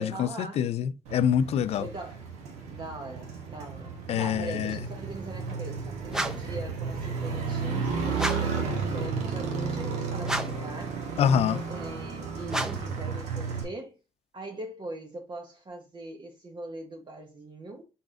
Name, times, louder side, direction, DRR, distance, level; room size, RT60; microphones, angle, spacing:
voice 1, 0.0-0.7 1.8-2.3 2.7-11.0 11.5-14.0 14.3-17.8, right 2 dB, 45° right, 0.9 m, -41 dB
voice 2, 0.6-1.9 4.1-4.8 11.2-11.6, left 8 dB, 65° left, 0.4 m, -25 dB
Motorcycle, 1.1-13.6, right 5 dB, 85° right, 0.9 m, -33 dB
sound 1, 6.1-6.6 8.1-8.6 10.2-10.7 12.5-13.0, right 1 dB, 5° right, 0.6 m, -32 dB
3.9 x 3.8 x 2.4 m
supercardioid pair, 60°, 11 cm